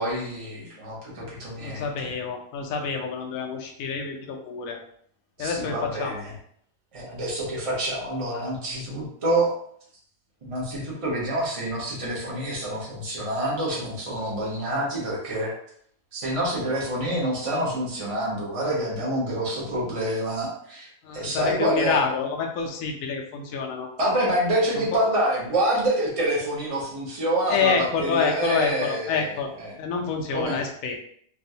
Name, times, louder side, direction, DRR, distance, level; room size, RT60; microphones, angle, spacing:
voice 1, 0.0-1.8 5.4-6.3 6.9-9.5 10.4-15.5 16.1-22.0 24.0-29.3 29.6-29.7 30.3-30.6, right 1 dB, 30° right, -4 dB, 0.7 m, -27 dB
voice 2, 1.6-4.8 5.4-6.2 21.0-23.9 24.7-25.0 27.5-29.5 29.8-31.0, left 5 dB, 70° left, 2 dB, 0.9 m, -27 dB
3.4 x 2.3 x 2.7 m, 0.64 s
omnidirectional pair, 1.7 m